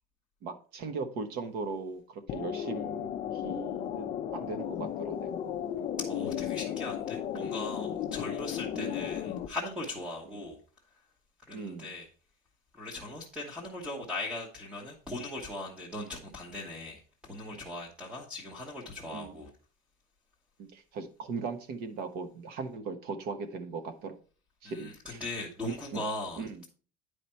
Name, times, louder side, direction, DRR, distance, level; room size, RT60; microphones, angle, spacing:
voice 1, 0.4-5.3 7.3-7.5 8.2-8.3 8.7-9.1 11.5-11.9 16.0-16.1 19.1-19.4 20.6-24.1 24.6-25.2 25.6-25.7 26.4-26.6, right 4 dB, 50° right, 1.3 m, -39 dB
sound 1, 2.3-9.5, left 10 dB, 30° left, 0.5 m, -35 dB
voice 2, 6.0-10.6 11.5-12.1 12.7-19.5 24.6-26.7, left 2 dB, 5° right, 1.1 m, -39 dB
9.8 x 5.0 x 4.4 m
cardioid pair, 175°, 21 cm